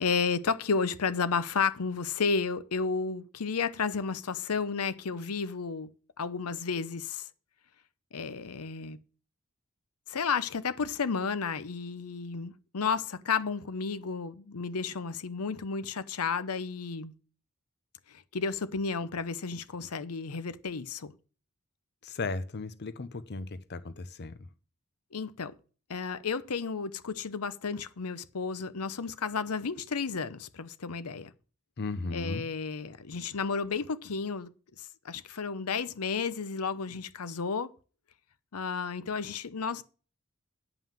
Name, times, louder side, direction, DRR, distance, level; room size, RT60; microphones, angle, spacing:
voice 1, 0.0-5.9 6.2-7.3 8.1-9.0 10.1-17.1 18.1-21.1 25.1-25.5 25.9-31.3 32.1-34.5 34.8-37.7 38.5-39.8, left 5 dB, 90° left, 0.8 m, -32 dB
voice 2, 22.0-24.4 31.8-32.4, left 3 dB, 50° left, 0.7 m, -36 dB
9.2 x 5.6 x 7.3 m
head